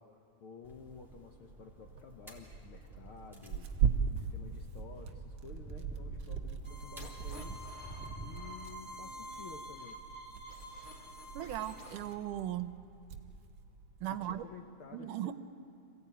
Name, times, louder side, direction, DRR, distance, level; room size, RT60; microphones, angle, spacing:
voice 1, 0.0-3.7 4.2-7.6 8.2-10.0 14.1-15.3, left 6 dB, 65° left, 3 dB, 1.3 m, -52 dB
sound 1, 0.6-8.5, right 3 dB, ahead, 3.2 m, -48 dB
Tearing, 1.8-14.4, right 7 dB, 65° right, 1.4 m, -40 dB
sound 2, 6.6-12.2, equal, 20° left, 1.7 m, -48 dB
voice 2, 11.4-12.7 14.0-14.4 14.9-15.3, right 12 dB, 85° right, 12 dB, 2.3 m, -37 dB
26.5 x 16.5 x 9.2 m, 2.5 s
omnidirectional pair, 3.6 m